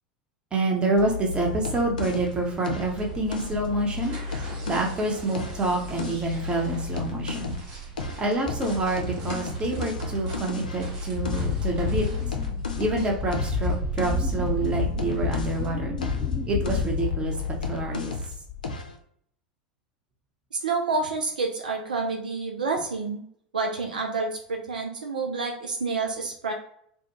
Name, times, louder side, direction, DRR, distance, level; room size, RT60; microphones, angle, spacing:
voice 1, 0.5-4.2 4.6-7.6 8.2-12.1 12.8-16.0 16.4-17.3 17.7-18.1, right 2 dB, 20° right, 0 dB, 0.8 m, -27 dB
sound 1, 1.0-4.9 5.3-7.7 8.0-15.7 16.0-18.4 18.6-19.0, left 4 dB, 75° left, 0.4 m, -34 dB
sound 2, 2.1-15.7, right 5 dB, 55° right, 0.9 m, -39 dB
Wind, 11.1-18.0 18.3-18.8, left 6 dB, 40° left, 0.7 m, -30 dB
voice 2, 20.5-23.2 23.5-26.5, right 4 dB, 75° right, 2 dB, 0.4 m, -28 dB
2.2 x 2.1 x 2.9 m, 0.67 s
figure-of-eight pair, 80°, 4 cm